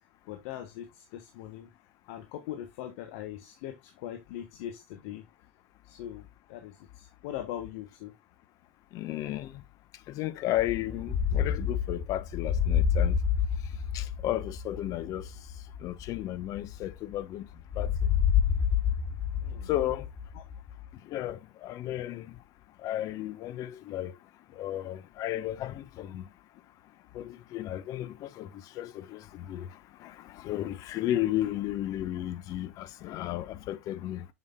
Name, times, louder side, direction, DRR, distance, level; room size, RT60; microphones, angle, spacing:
voice 1, 0.3-1.7 2.1-5.2 5.8-8.1 19.4-19.7 20.3-20.4, left 11 dB, 60° left, 1.4 m, -41 dB
voice 2, 8.9-9.6 10.1-13.2 13.9-15.2 15.8-17.5 17.8-17.9 19.7-20.1 21.1-22.3 22.8-24.1 24.6-26.2 27.1-28.5 28.8-29.7 30.0-34.3, left 13 dB, 45° left, 1.0 m, -33 dB
sound 1, 10.6-17.2 17.7-20.9, left 8 dB, 10° left, 1.8 m, -29 dB
7.3 x 6.4 x 2.3 m
hypercardioid pair, 100°, 8 cm